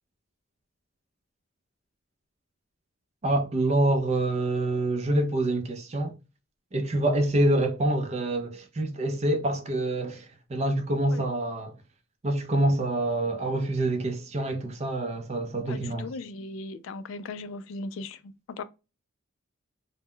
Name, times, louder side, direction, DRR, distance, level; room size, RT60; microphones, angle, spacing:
voice 1, 3.2-6.2 6.7-11.7 12.2-16.1, right 1 dB, 30° right, 0.4 m, -26 dB
voice 2, 15.7-18.6, left 3 dB, 70° left, 0.3 m, -38 dB
2.1 x 2.0 x 3.6 m
head